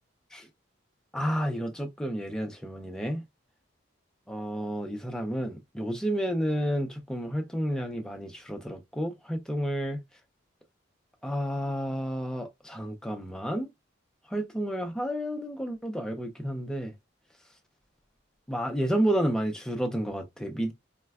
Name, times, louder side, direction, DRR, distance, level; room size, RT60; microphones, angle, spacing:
voice 1, 1.1-3.2 4.3-10.0 11.2-13.7 14.3-16.9 18.5-20.7, equal, 5° left, 0.4 m, -31 dB
4.1 x 2.1 x 2.3 m
head